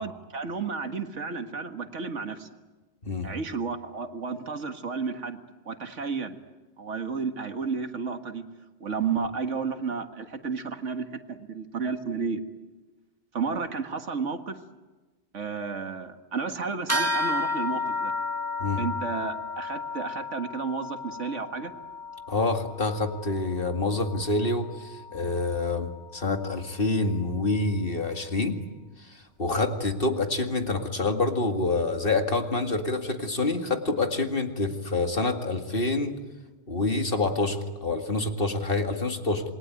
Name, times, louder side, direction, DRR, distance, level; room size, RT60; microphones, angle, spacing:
voice 1, 0.0-2.5 3.2-5.4 5.7-6.4 6.8-8.4 8.8-12.4 13.3-14.6 15.3-18.1 18.8-21.7, right 5 dB, 80° right, 7 dB, 2.0 m, -32 dB
sound 1, 16.9-26.7, left 2 dB, 10° right, 1.7 m, -33 dB
voice 2, 22.3-28.6 29.4-36.2 36.7-39.4, left 2 dB, 50° left, 5 dB, 2.3 m, -27 dB
27.5 x 21.0 x 9.1 m, 1.2 s
omnidirectional pair, 1.2 m